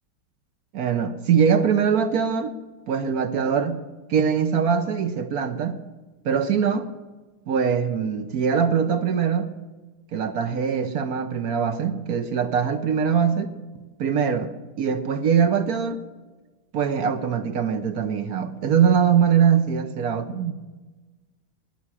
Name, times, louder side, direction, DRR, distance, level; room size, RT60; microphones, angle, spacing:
voice 1, 0.7-2.5 2.9-3.8 4.1-5.8 6.2-6.9 7.5-9.5 10.1-13.5 14.0-14.5 14.8-16.0 16.7-20.5, right 7 dB, 60° right, 8 dB, 1.0 m, -22 dB
12.5 x 10.0 x 9.9 m, 1.3 s
omnidirectional pair, 2.3 m